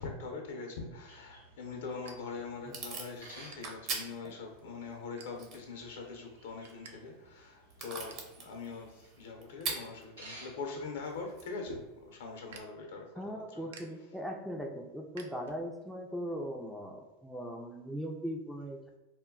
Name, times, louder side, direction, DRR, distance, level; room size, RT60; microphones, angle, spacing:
voice 1, 0.0-13.7, left 4 dB, 70° left, 2 dB, 0.7 m, -43 dB
sound 1, 1.0-3.0 3.5-3.7 4.3-4.5 5.2-5.7 6.1-6.9 7.2-7.3 7.7-8.3 8.8-9.9 10.2-15.9, right 5 dB, 70° right, 0.4 m, -56 dB
sound 2, 1.1-11.4, right 1 dB, 90° right, 0.8 m, -57 dB
Packing tape duct tape / Tearing, 1.8-12.6, right 4 dB, 45° right, 0.8 m, -46 dB
voice 2, 13.2-18.8, equal, ahead, 1 dB, 0.4 m, -39 dB
2.2 x 2.1 x 3.7 m, 1.1 s
hypercardioid pair, 95°, 0 cm